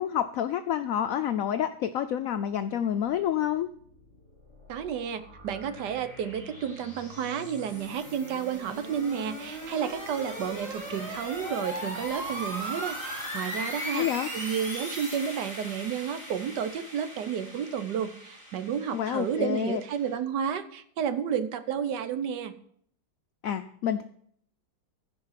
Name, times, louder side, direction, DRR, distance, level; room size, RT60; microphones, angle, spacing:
voice 1, 0.0-3.7 13.9-14.3 18.9-19.8 23.4-24.0, left 10 dB, 80° left, 9 dB, 0.7 m, -28 dB
sound 1, 4.1-20.1, equal, 25° right, 5.3 m, -39 dB
voice 2, 4.7-14.1 14.3-22.5, right 8 dB, 70° right, 11 dB, 1.3 m, -31 dB
15.0 x 5.2 x 5.7 m, 0.64 s
omnidirectional pair, 2.0 m